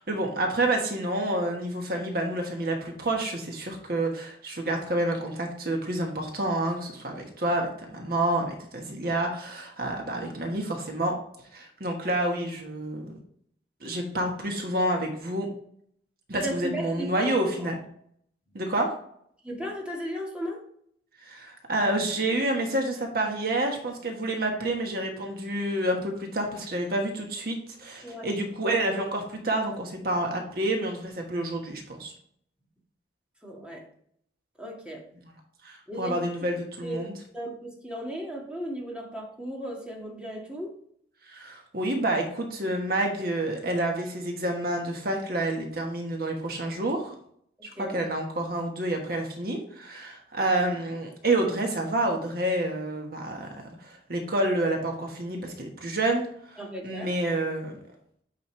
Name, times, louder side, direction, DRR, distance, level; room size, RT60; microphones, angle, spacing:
voice 1, 0.0-11.1 11.5-13.1 13.8-15.5 16.3-17.7 18.5-18.9 21.2-32.1 35.6-37.1 41.3-47.1 47.8-53.5 53.8-56.6 56.8-57.8, right 1 dB, 55° right, 2 dB, 1.4 m, -28 dB
voice 2, 16.3-17.3 17.6-17.7 18.5-18.6 19.4-20.6 28.0-28.3 33.4-33.8 34.6-35.1 35.9-36.2 36.8-37.0 37.3-40.8 47.6-48.0 56.6-57.1, equal, 5° right, -2 dB, 1.8 m, -36 dB
8.6 x 5.4 x 3.2 m, 0.64 s
head